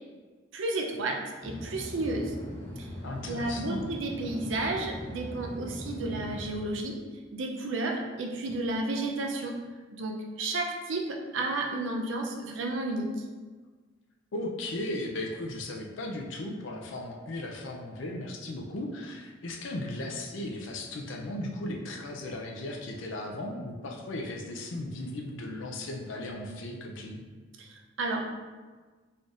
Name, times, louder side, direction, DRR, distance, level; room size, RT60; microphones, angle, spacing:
voice 1, 0.5-2.3 2.8-2.9 3.3-7.0 7.3-9.6 9.9-13.1 27.6-28.4, right 2 dB, 85° right, 2 dB, 0.5 m, -32 dB
sound 1, 1.4-6.6, equal, 10° left, 0.7 m, -40 dB
voice 2, 3.0-3.9 14.3-27.2, left 1 dB, 85° left, 0 dB, 0.5 m, -36 dB
4.0 x 3.4 x 2.5 m, 1.4 s
head